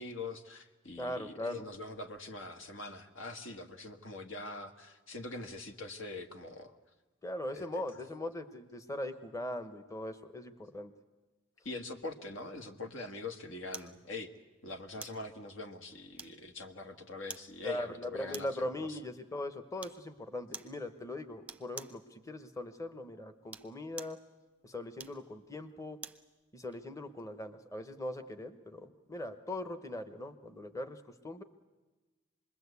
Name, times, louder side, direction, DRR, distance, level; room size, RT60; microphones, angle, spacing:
voice 1, 0.0-6.8 7.5-8.0 11.6-14.3 14.6-19.0, left 3 dB, 75° left, 6 dB, 1.8 m, -43 dB
voice 2, 1.0-1.6 7.2-10.9 17.6-24.2 24.6-26.0 26.5-31.4, left 1 dB, 15° left, 9 dB, 1.0 m, -40 dB
sound 1, 13.7-14.0 15.0-15.3 16.2-16.6 17.3-17.5 18.3-18.7 19.8-20.0 20.5-20.8 21.5-22.0 23.4-24.2 25.0-26.3 26.7-26.8, right 4 dB, 5° right, 0.8 m, -47 dB
26.5 x 21.5 x 8.3 m, 1.2 s
head